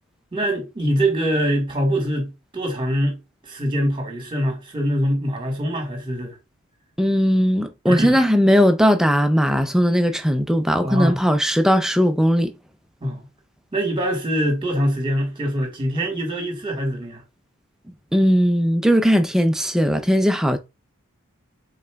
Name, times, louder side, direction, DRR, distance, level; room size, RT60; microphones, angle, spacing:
voice 1, 0.3-3.2 3.4-6.4 7.9-8.2 10.8-11.2 13.0-13.2 13.7-17.2, equal, 20° right, 1.6 m, -23 dB
voice 2, 7.0-12.5 18.1-20.6, equal, ahead, 0.4 m, -18 dB
5.3 x 3.9 x 2.3 m
head